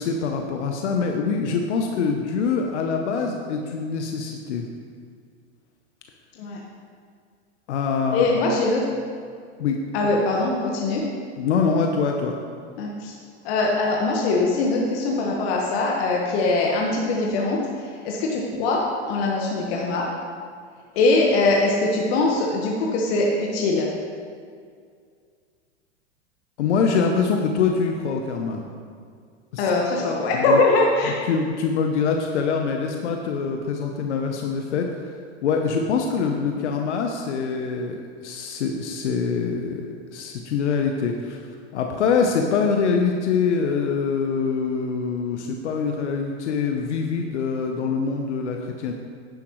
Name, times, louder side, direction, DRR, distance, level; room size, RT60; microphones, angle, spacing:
voice 1, 0.0-4.7 7.7-8.4 9.6-9.8 11.4-12.4 26.6-28.6 29.5-29.7 30.3-30.6 31.3-34.9 35.4-41.5 41.7-48.9, left 5 dB, 75° left, 3 dB, 1.0 m, -24 dB
voice 2, 8.1-8.8 9.9-11.0 12.8-13.1 13.4-18.8 19.1-20.1 20.9-23.9 29.6-31.2, left 2 dB, 60° left, -2 dB, 1.6 m, -22 dB
10.5 x 9.6 x 3.2 m, 2.1 s
hypercardioid pair, 110°, 35 cm